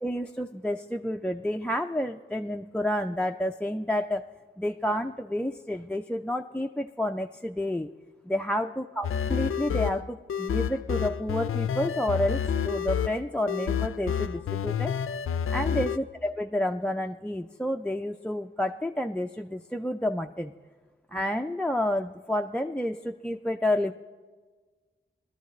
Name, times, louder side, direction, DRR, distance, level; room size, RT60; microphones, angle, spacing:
voice 1, 0.0-4.3 4.6-7.9 8.2-14.9 15.5-20.5 21.1-23.9, left 1 dB, 5° left, 6 dB, 0.3 m, -30 dB
sound 1, 9.0-16.0, left 8 dB, 90° left, 0.4 m, -29 dB
20.0 x 13.0 x 3.1 m, 1.4 s
wide cardioid pair, 120°, 21 cm